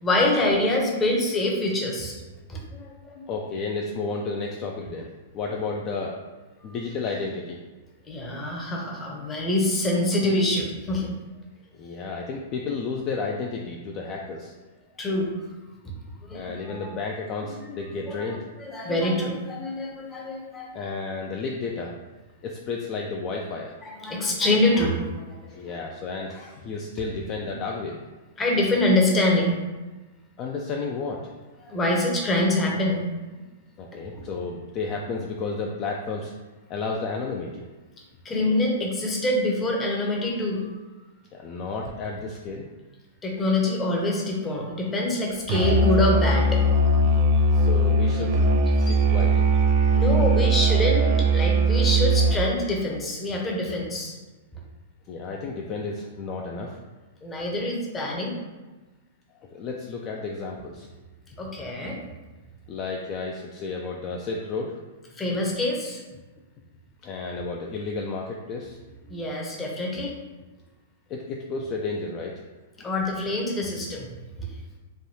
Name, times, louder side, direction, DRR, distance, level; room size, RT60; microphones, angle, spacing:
voice 1, 0.0-2.2 2.5-3.2 6.6-6.7 8.1-11.1 15.0-15.3 16.2-16.9 18.1-18.2 18.6-20.7 23.8-25.6 28.4-29.5 31.6-33.1 38.2-40.7 43.2-46.6 49.9-54.2 57.2-58.3 61.4-62.0 65.2-66.0 69.1-70.1 72.8-74.1, left 1 dB, 20° left, -1 dB, 0.7 m, -25 dB
voice 2, 3.3-6.2 6.6-7.6 11.7-14.5 16.3-18.4 20.7-21.9 22.4-23.7 25.5-28.0 30.4-31.2 33.8-36.3 36.7-37.7 41.3-42.7 47.5-48.4 48.8-49.5 55.1-56.8 59.5-60.9 62.7-64.8 67.0-68.8 71.1-72.4 72.8-72.9, left 4 dB, 35° left, -1 dB, 0.3 m, -32 dB
Musical instrument, 45.5-52.5, right 2 dB, 50° right, 0.4 m, -20 dB
3.3 x 2.2 x 2.7 m, 1.2 s
hypercardioid pair, 125°, 0 cm